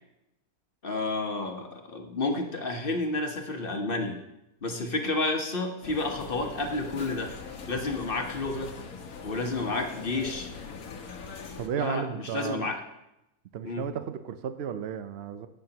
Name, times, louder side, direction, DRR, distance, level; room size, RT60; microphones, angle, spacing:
voice 1, 0.8-4.2 4.6-7.3 7.7-8.7 9.2-10.5 11.7-12.8 13.6-13.9, left 2 dB, 40° left, 3 dB, 1.1 m, -30 dB
sound 1, 5.8-11.7, left 5 dB, 70° left, 1.4 m, -42 dB
voice 2, 11.6-12.7 13.5-15.5, right 8 dB, 60° right, 10 dB, 0.7 m, -33 dB
13.0 x 9.2 x 2.9 m, 0.88 s
omnidirectional pair, 1.6 m